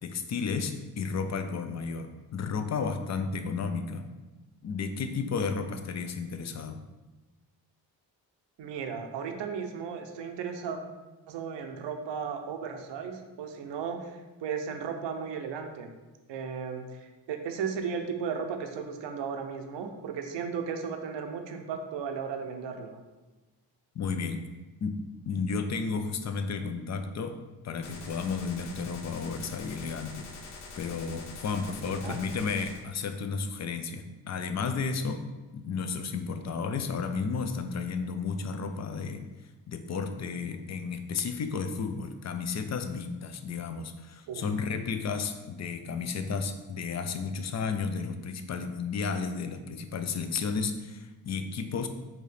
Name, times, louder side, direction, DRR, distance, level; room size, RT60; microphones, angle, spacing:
voice 1, 0.0-4.1 4.6-6.8 23.9-24.4 24.8-25.0 25.3-27.4 27.6-35.3 35.5-39.2 39.7-51.9, left 5 dB, 40° left, 8 dB, 0.5 m, -33 dB
voice 2, 8.6-10.8 11.3-15.9 16.3-23.0 31.8-32.2 44.3-44.5, right 6 dB, 70° right, 5 dB, 0.7 m, -35 dB
Gunshot gunfire, 27.8-32.8, left 3 dB, 90° left, 0.7 m, -45 dB
4.6 x 2.8 x 3.2 m, 1.2 s
supercardioid pair, 50°, 46 cm